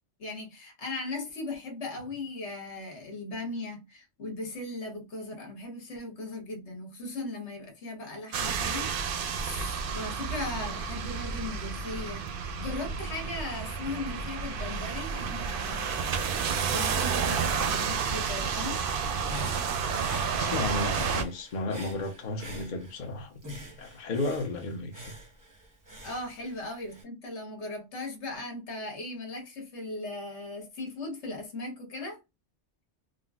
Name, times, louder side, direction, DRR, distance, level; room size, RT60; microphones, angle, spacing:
voice 1, 0.2-8.9 9.3-15.9 16.6-18.8 26.0-32.2, left 2 dB, 70° left, 1.3 m, -38 dB
sound 1, 8.3-21.2, right 6 dB, 60° right, 0.6 m, -31 dB
Human voice / Breathing, 18.9-23.1 23.4-27.0, equal, 20° right, 0.6 m, -45 dB
voice 2, 20.3-23.4 23.8-25.1, left 2 dB, 50° left, 0.7 m, -33 dB
3.8 x 2.0 x 2.3 m
omnidirectional pair, 1.2 m